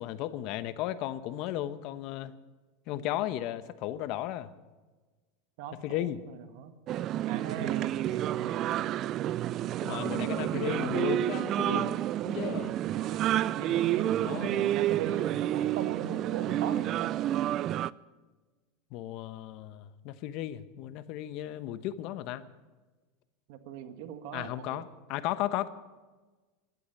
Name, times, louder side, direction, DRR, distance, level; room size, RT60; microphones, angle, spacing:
voice 1, 0.0-2.3 2.9-4.5 5.8-6.2 9.8-12.7 14.2-14.7 18.9-22.4 24.3-25.7, left 13 dB, 55° left, 13 dB, 1.0 m, -35 dB
voice 2, 5.6-6.7 7.2-8.7 10.0-10.1 12.9-13.2 13.5-17.1 23.5-24.8, right 9 dB, 65° right, 9 dB, 1.7 m, -39 dB
sound 1, 6.9-17.9, right 13 dB, 40° right, 0.4 m, -30 dB
16.0 x 12.0 x 7.1 m, 1.3 s
supercardioid pair, 125°, 0 cm